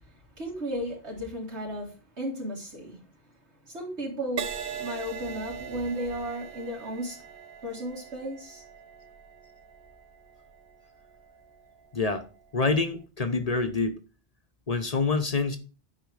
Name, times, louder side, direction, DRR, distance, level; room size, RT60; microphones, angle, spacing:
voice 1, 0.4-3.0 3.7-7.2 7.6-8.6, equal, 85° right, 4.0 m, -34 dB
Crash cymbal, 4.4-12.0 12.7-13.0, right 7 dB, 60° right, 0.9 m, -41 dB
voice 2, 11.9-12.3 12.5-14.0 14.7-15.6, left 3 dB, 40° left, 0.9 m, -26 dB
10.5 x 5.0 x 4.8 m
omnidirectional pair, 1.1 m